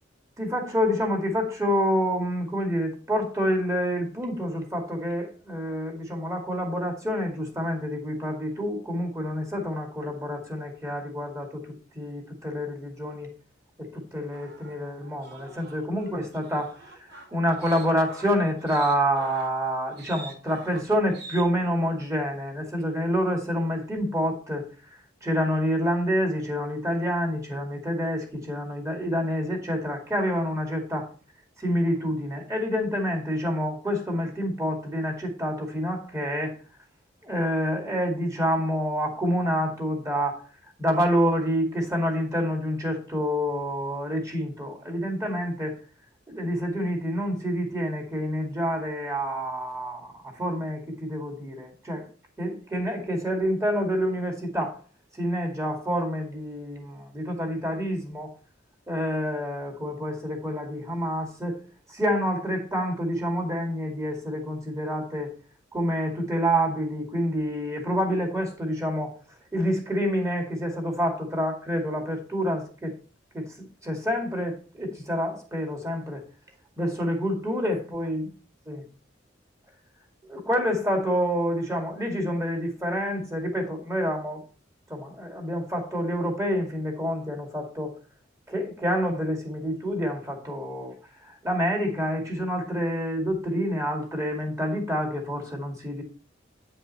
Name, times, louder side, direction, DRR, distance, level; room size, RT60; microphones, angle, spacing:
voice 1, 0.4-13.3 13.8-24.7 25.2-31.1 31.6-36.5 37.2-40.4 40.8-45.8 46.3-52.1 52.4-54.8 55.1-58.3 58.9-61.6 61.9-65.3 65.7-69.1 69.5-72.9 73.3-73.5 73.8-76.2 76.8-78.2 78.7-78.8 80.3-84.4 84.9-87.9 88.5-90.9 91.2-96.0, equal, 15° right, 2.1 m, -28 dB
sound 1, 14.3-21.4, right 3 dB, 55° right, 1.9 m, -46 dB
9.0 x 5.4 x 4.2 m
head